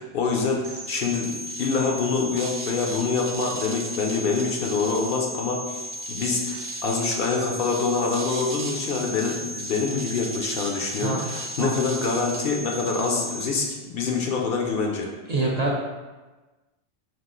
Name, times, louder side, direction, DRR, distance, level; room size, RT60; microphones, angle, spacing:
voice 1, 0.0-15.1, left 4 dB, 60° left, 0 dB, 0.7 m, -26 dB
sound 1, 0.6-13.5, right 1 dB, 65° right, 0.9 m, -35 dB
voice 2, 15.3-15.8, right 2 dB, 50° right, -3 dB, 0.5 m, -25 dB
4.8 x 2.5 x 3.7 m, 1.2 s
omnidirectional pair, 1.2 m